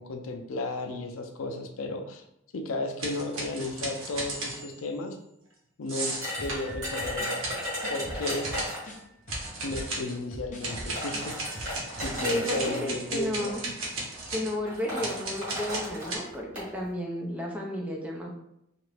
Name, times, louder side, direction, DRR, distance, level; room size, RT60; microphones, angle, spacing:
voice 1, 0.0-2.2 2.5-5.2 5.8-7.4 7.9-8.5 9.6-11.3 12.0-13.5, left 2 dB, 80° left, 5 dB, 0.4 m, -34 dB
sound 1, 3.0-4.8 5.9-6.7 7.4-7.8 8.2-8.8 9.3-10.2 10.6-16.2, right 2 dB, 75° right, 0.9 m, -35 dB
sound 2, 6.2-9.0 10.0-10.1 10.7-12.8 13.7-14.0 14.3-14.4 14.7-16.7, equal, 40° right, 1.4 m, -35 dB
sound 3, 6.4-9.0 9.3-12.3 12.6-12.8, equal, 35° left, 0.6 m, -41 dB
voice 2, 12.2-13.6 14.3-18.3, left 1 dB, 5° right, -1 dB, 0.4 m, -32 dB
2.8 x 2.4 x 3.2 m, 0.78 s
head